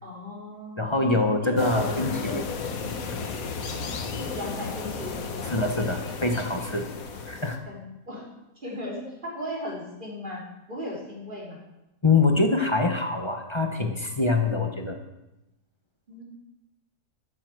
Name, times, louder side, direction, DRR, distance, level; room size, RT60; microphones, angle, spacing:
voice 1, 0.0-1.0 1.4-2.4 2.8-3.1 3.8-5.5 7.1-7.2 7.6-8.2 8.5-10.4 10.7-11.6 16.1-16.2, left 1 dB, 30° right, -4 dB, 3.4 m, -37 dB
voice 2, 0.8-2.4 3.1-3.2 5.5-6.9 7.3-7.6 12.0-15.0, left 3 dB, 20° left, 4 dB, 0.9 m, -24 dB
sound 1, 1.6-7.6, left 4 dB, 65° left, 1.5 m, -34 dB
12.5 x 7.5 x 6.2 m, 0.93 s
omnidirectional pair, 1.6 m